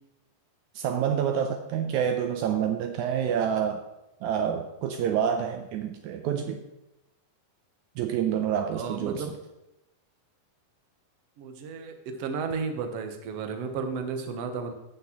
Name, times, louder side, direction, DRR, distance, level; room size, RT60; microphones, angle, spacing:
voice 1, 0.8-3.8 4.2-6.6 8.0-9.3, right 8 dB, 90° right, 6 dB, 1.7 m, -27 dB
voice 2, 8.7-9.3 11.4-14.7, right 5 dB, 75° right, 6 dB, 1.4 m, -33 dB
17.5 x 5.9 x 3.0 m, 0.92 s
omnidirectional pair, 4.0 m